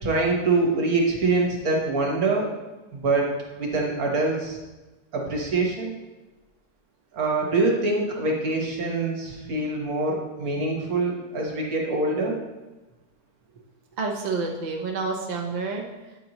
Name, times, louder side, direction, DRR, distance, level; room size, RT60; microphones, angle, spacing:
voice 1, 0.0-2.5 2.9-4.6 5.1-5.9 7.1-12.4, right 3 dB, 60° right, 0 dB, 1.6 m, -24 dB
voice 2, 14.0-16.2, right 4 dB, 45° right, 0 dB, 0.6 m, -29 dB
8.3 x 5.2 x 2.9 m, 1.1 s
omnidirectional pair, 1.8 m